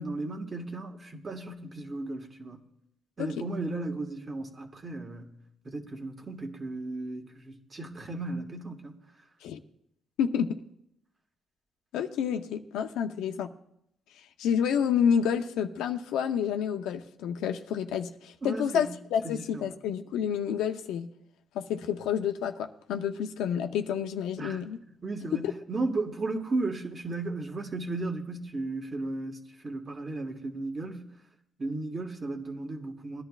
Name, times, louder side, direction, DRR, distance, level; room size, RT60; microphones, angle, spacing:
voice 1, 0.0-2.6 3.2-5.3 5.6-9.0 18.4-18.9 19.2-19.6 24.4-24.6 25.0-31.1 31.6-33.2, right 2 dB, 35° right, 4 dB, 1.6 m, -35 dB
voice 2, 10.2-10.6 11.9-13.5 14.4-21.1 21.5-24.8 25.3-25.5, left 8 dB, 90° left, 6 dB, 0.7 m, -29 dB
20.5 x 11.0 x 2.4 m, 0.76 s
cardioid pair, 90°, 0 cm